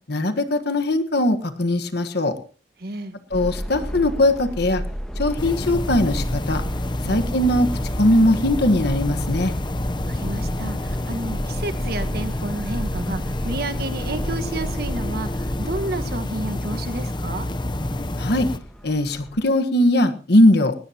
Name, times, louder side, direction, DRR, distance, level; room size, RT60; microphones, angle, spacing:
voice 1, 0.1-2.3 3.3-4.8 5.2-6.6 7.1-7.7 8.0-9.5 18.2-18.5 18.8-20.7, left 1 dB, 65° left, 9 dB, 1.4 m, -20 dB
voice 2, 2.8-3.1 7.0-7.2 10.0-17.5, right 2 dB, 60° right, 9 dB, 1.5 m, -31 dB
Subway metro underground, 3.3-19.5, equal, 5° left, 1.4 m, -33 dB
sound 1, 5.4-18.6, left 1 dB, 25° left, 0.8 m, -28 dB
19.0 x 17.5 x 2.9 m, 0.37 s
head